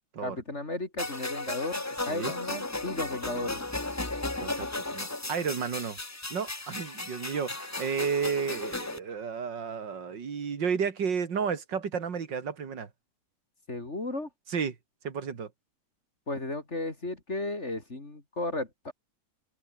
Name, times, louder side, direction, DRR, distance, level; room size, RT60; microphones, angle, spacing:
voice 1, 0.2-3.6 13.7-14.3 16.3-18.9, left 2 dB, 40° left, 3.8 m, -34 dB
sound 1, 1.0-9.0, left 2 dB, 15° left, 0.6 m, -35 dB
voice 2, 4.4-6.0 6.3-12.9 14.5-14.8 15.0-15.5, right 6 dB, 85° right, 2.8 m, -32 dB
open air
omnidirectional pair, 1.9 m